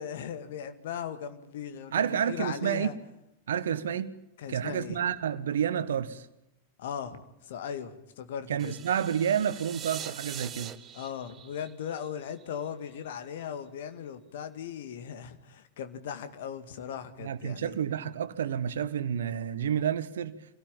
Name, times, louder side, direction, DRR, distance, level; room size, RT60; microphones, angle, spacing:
voice 1, 0.0-3.0 4.4-5.1 6.8-8.7 10.9-17.8, left 8 dB, 55° left, 2.1 m, -38 dB
voice 2, 1.9-2.9 3.5-4.1 4.5-6.3 8.5-10.7 17.2-20.3, right 8 dB, 65° right, 1.2 m, -29 dB
sound 1, 8.6-12.7, right 9 dB, 30° right, 1.1 m, -43 dB
26.5 x 18.0 x 9.1 m
figure-of-eight pair, 90°, 0 cm